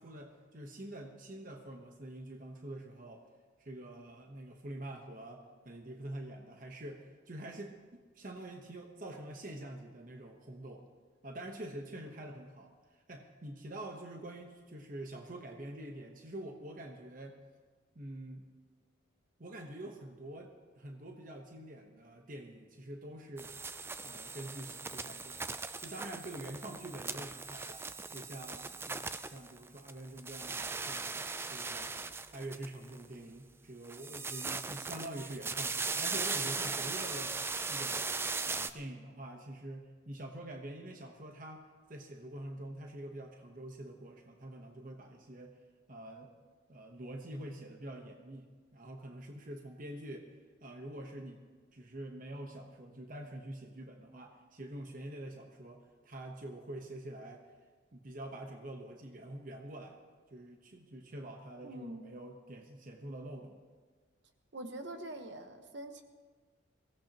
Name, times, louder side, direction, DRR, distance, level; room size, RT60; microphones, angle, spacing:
voice 1, 0.0-3.3 3.6-10.8 11.2-17.4 17.9-18.5 19.4-23.6 24.0-25.5 25.8-27.8 28.1-31.9 32.3-37.4 37.7-38.1 38.5-45.5 45.9-46.3 46.7-50.3 50.6-51.4 51.7-57.5 57.9-60.0 60.3-63.6, right 1 dB, 45° right, 3 dB, 1.0 m, -46 dB
sound 1, 23.4-29.9 30.2-33.0 33.9-38.7, right 4 dB, 10° right, 0.3 m, -38 dB
voice 2, 61.6-62.0 64.5-66.0, right 1 dB, 60° right, 6 dB, 1.1 m, -44 dB
22.5 x 16.5 x 2.9 m, 1.5 s
head